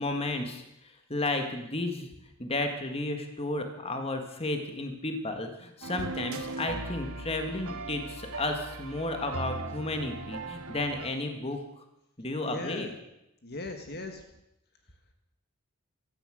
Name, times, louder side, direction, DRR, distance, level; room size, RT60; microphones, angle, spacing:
voice 1, 0.0-2.1 2.4-11.8 12.2-12.9, left 2 dB, 25° left, 5 dB, 1.7 m, -33 dB
sound 1, 5.8-11.1, right 2 dB, 70° right, 1.5 m, -39 dB
voice 2, 12.4-13.0 13.4-14.2, left 2 dB, 45° left, 5 dB, 1.6 m, -38 dB
15.5 x 13.5 x 6.4 m, 0.85 s
head